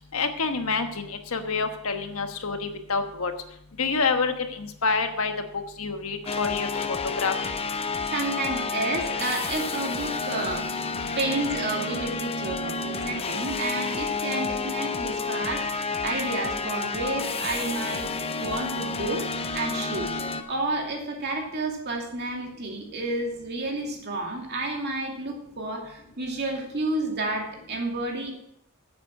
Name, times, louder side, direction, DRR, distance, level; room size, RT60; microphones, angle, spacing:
voice 1, 0.1-3.3 3.8-5.3 5.8-6.9 7.2-7.5, left 4 dB, 75° left, 6 dB, 1.2 m, -27 dB
sound 1, 6.3-20.4, left 4 dB, 25° left, 0.7 m, -30 dB
voice 2, 8.1-10.7 11.2-18.1 18.4-19.3 19.5-20.1 20.5-28.3, right 2 dB, 50° right, 1 dB, 2.5 m, -30 dB
9.5 x 8.0 x 5.9 m, 0.75 s
head